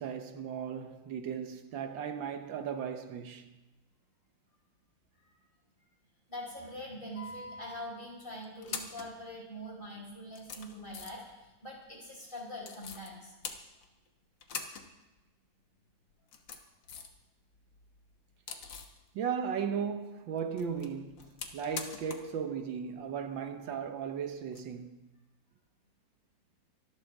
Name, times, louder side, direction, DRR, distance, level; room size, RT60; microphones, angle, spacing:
voice 1, 0.0-3.6 19.1-25.1, right 7 dB, 80° right, 1.7 m, -36 dB
voice 2, 6.3-13.3, equal, 25° left, 5.3 m, -43 dB
sound 1, 7.2-7.8 8.4-9.1 9.9-10.0 10.3-11.3 12.6-13.1 13.4-14.1 14.4-14.9 15.2-15.3 16.1-17.2 17.5-19.0 20.4-22.3 22.6-22.7 24.5-24.6, left 5 dB, 75° left, 2.0 m, -43 dB
25.0 x 12.5 x 3.6 m
omnidirectional pair, 2.0 m